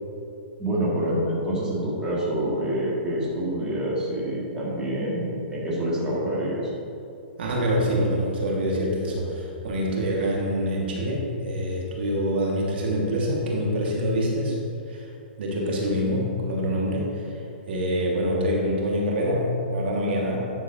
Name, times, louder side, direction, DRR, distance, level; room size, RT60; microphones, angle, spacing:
voice 1, 0.6-6.7, right 1 dB, 10° right, -7 dB, 1.8 m, -27 dB
voice 2, 7.4-14.6 14.9-15.1 15.4-17.4 17.7-20.4, equal, 70° right, -3 dB, 1.7 m, -25 dB
10.0 x 6.3 x 2.7 m, 2.7 s
hypercardioid pair, 140°, 6 cm